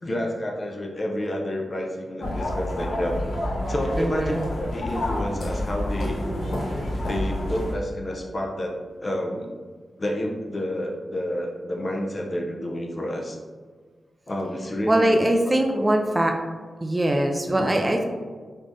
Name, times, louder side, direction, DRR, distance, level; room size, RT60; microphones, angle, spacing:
voice 1, 0.0-3.2 3.7-4.3 4.7-6.2 7.1-9.5 10.0-13.4 14.3-15.2 15.5-15.9 17.6-17.7, left 1 dB, 45° left, 0 dB, 0.4 m, -29 dB
sound 1, 2.2-7.7, left 1 dB, 80° left, 0.7 m, -28 dB
voice 2, 4.0-4.5 14.9-16.3 16.8-18.0, right 1 dB, 25° right, 3 dB, 0.3 m, -22 dB
3.4 x 2.1 x 2.6 m, 1.5 s
supercardioid pair, 40°, 0 cm